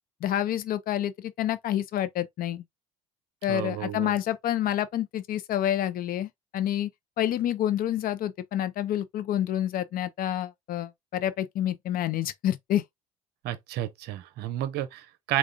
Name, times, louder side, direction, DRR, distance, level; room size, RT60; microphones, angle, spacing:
voice 1, 0.2-2.6 3.4-6.9 7.2-12.8, left 11 dB, 50° left, 0.6 m, -28 dB
voice 2, 3.5-4.1 13.4-15.4, right 13 dB, 60° right, 0.6 m, -31 dB
3.7 x 2.3 x 3.4 m
hypercardioid pair, 65°, 19 cm